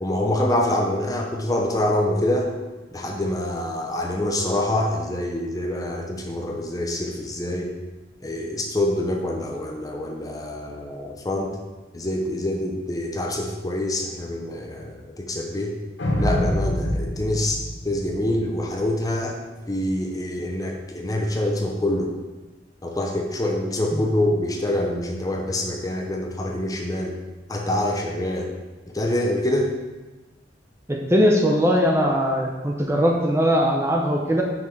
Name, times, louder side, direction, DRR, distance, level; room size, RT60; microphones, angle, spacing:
voice 1, 0.0-2.5 2.9-7.7 8.2-11.6 11.9-15.8 16.2-19.4 19.7-22.1 22.8-27.1 27.5-28.5 28.9-29.7, left 1 dB, 20° left, 1 dB, 0.7 m, -25 dB
sound 1, 16.0-18.5, equal, 85° left, 1.0 m, -25 dB
voice 2, 30.9-34.4, equal, 15° right, 0 dB, 0.7 m, -20 dB
5.8 x 4.8 x 4.7 m, 1.2 s
head